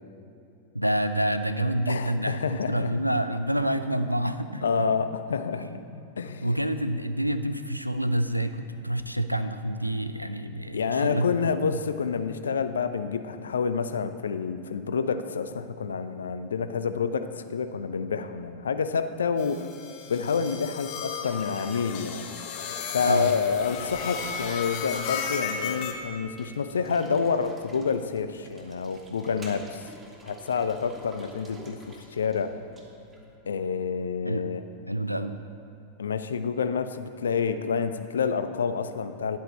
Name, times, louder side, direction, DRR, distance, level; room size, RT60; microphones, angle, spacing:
voice 1, 0.7-4.9 5.5-5.8 6.4-11.3 23.0-23.3 34.2-34.4 34.9-35.4, right 1 dB, 90° right, 10 dB, 0.4 m, -28 dB
voice 2, 1.9-2.9 4.6-5.7 6.2-6.5 10.7-19.7 20.1-22.2 22.9-29.9 30.2-32.6 33.5-34.6 36.0-39.4, left 6 dB, 70° left, 10 dB, 0.4 m, -28 dB
sound 1, 19.4-25.9, left 6 dB, 45° left, 0.8 m, -35 dB
sound 2, 21.2-25.4, left 3 dB, 25° left, 1.0 m, -47 dB
sound 3, 24.1-33.4, right 2 dB, 15° right, 1.1 m, -50 dB
10.5 x 7.8 x 4.2 m, 2.7 s
figure-of-eight pair, 90°, 0 cm